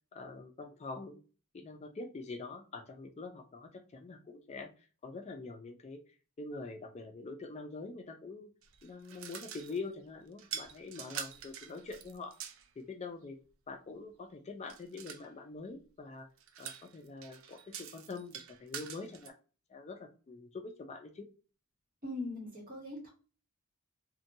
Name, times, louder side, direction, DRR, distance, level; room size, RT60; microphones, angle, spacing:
voice 1, 0.1-1.2 1.5-4.7 5.0-6.0 6.4-8.5 8.8-12.4 12.8-13.4 13.7-16.3 16.6-19.3 19.7-21.3, left 3 dB, 30° left, 5 dB, 0.4 m, -45 dB
sound 1, 8.6-9.9 10.4-12.7 14.7-15.3 16.4-19.3, right 8 dB, 65° right, 0.4 m, -45 dB
voice 2, 22.0-23.1, left 2 dB, 40° right, -1 dB, 1.0 m, -40 dB
2.7 x 2.2 x 2.6 m, 0.35 s
head